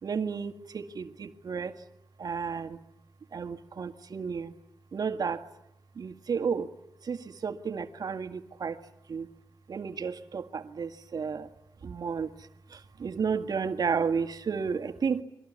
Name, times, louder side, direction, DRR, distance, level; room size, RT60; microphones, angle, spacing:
voice 1, 0.0-1.8 2.2-2.8 3.3-4.5 4.9-5.5 6.0-6.7 7.0-8.8 9.1-9.3 9.7-11.5 11.8-15.2, right 6 dB, 55° right, 8 dB, 1.8 m, -32 dB
29.0 x 23.5 x 8.3 m, 0.84 s
cardioid pair, 100°, 8 cm